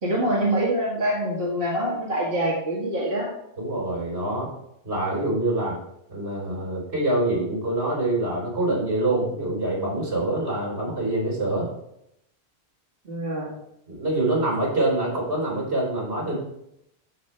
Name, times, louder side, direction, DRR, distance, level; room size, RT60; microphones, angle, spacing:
voice 1, 0.0-3.3 13.1-13.5, right 1 dB, 60° right, -6 dB, 2.1 m, -25 dB
voice 2, 3.6-4.5 4.8-5.8 6.1-11.7 13.9-16.3, right 2 dB, 80° right, -3 dB, 4.3 m, -25 dB
14.5 x 5.3 x 3.4 m, 0.78 s
omnidirectional pair, 1.1 m